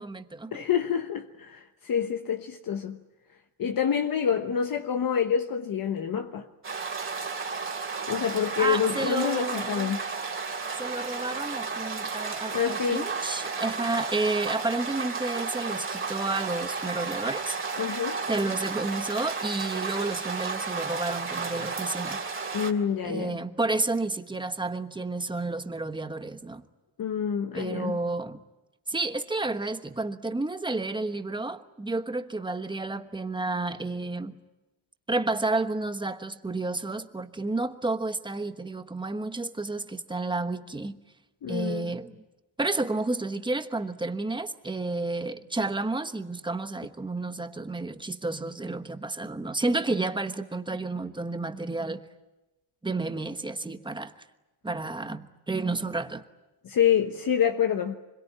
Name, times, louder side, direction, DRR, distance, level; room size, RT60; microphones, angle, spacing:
voice 1, 0.0-0.6 8.6-10.0 10.8-17.6 18.3-22.2 23.0-26.6 27.5-28.4 28.9-34.3 35.1-41.0 41.5-42.1 42.6-52.0 52.8-54.1 54.6-56.2, right 2 dB, 10° right, 1.2 m, -31 dB
voice 2, 0.5-3.0 3.6-6.5 8.1-10.0 12.5-13.1 17.8-18.2 22.5-23.4 27.0-28.0 41.4-41.9 56.6-57.9, left 8 dB, 45° left, 1.2 m, -27 dB
sound 1, 6.6-22.7, right 4 dB, 25° right, 2.9 m, -33 dB
25.5 x 22.5 x 9.8 m
cardioid pair, 125°, 49 cm